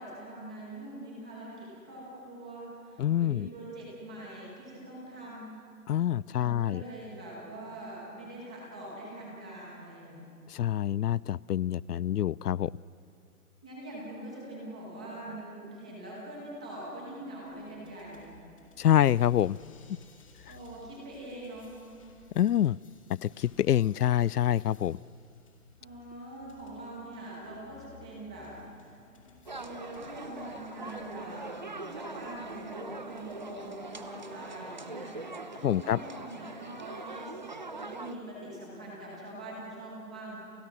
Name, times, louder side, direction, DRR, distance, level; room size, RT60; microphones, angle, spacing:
voice 1, 0.0-5.7 6.4-10.3 13.6-18.3 20.5-21.8 25.8-28.5 29.6-35.3 35.5-37.3 37.7-40.4, right 1 dB, 5° right, -4 dB, 1.0 m, -43 dB
voice 2, 3.0-3.5 5.9-6.8 10.5-12.7 18.8-19.6 22.4-22.8 23.1-25.0 35.6-36.0, left 11 dB, 85° left, 24 dB, 0.6 m, -26 dB
sound 1, 17.4-34.7, left 4 dB, 20° left, 2.2 m, -59 dB
sound 2, 29.5-38.1, right 3 dB, 30° right, 0.7 m, -42 dB
29.5 x 28.5 x 6.1 m, 2.4 s
hypercardioid pair, 180°, 45 cm